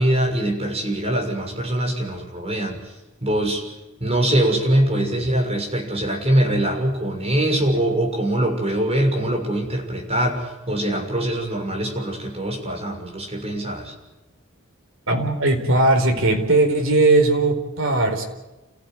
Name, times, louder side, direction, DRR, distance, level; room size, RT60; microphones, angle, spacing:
voice 1, 0.0-2.8 3.2-3.6 4.0-13.9, right 1 dB, 30° right, 2 dB, 6.6 m, -23 dB
voice 2, 15.1-18.2, right 2 dB, 65° right, 4 dB, 4.7 m, -18 dB
29.5 x 16.0 x 9.5 m, 1.1 s
head